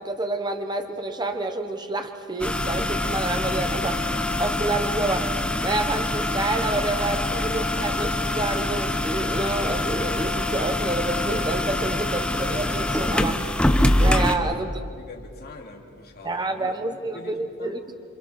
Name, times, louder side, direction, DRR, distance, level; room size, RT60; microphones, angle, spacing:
voice 1, 0.0-5.3 5.6-13.5 14.0-14.8 16.2-18.0, right 2 dB, 20° right, 6 dB, 1.2 m, -28 dB
sound 1, 2.4-14.3, left 1 dB, 5° left, 1.0 m, -24 dB
voice 2, 14.9-17.8, left 2 dB, 45° left, 1 dB, 3.0 m, -44 dB
27.5 x 26.5 x 5.9 m, 2.1 s
head